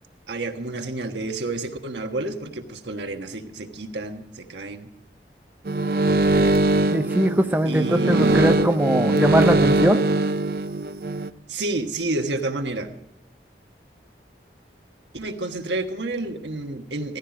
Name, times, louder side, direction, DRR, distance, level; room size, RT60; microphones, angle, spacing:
voice 1, 0.3-4.9 7.7-8.5 11.5-12.9 15.1-17.2, right 2 dB, 85° right, 5 dB, 1.4 m, -29 dB
sound 1, 5.7-11.3, right 2 dB, 55° right, 0.6 m, -21 dB
voice 2, 6.9-10.0, right 1 dB, 10° right, 6 dB, 0.7 m, -20 dB
16.5 x 14.5 x 4.9 m, 0.78 s
head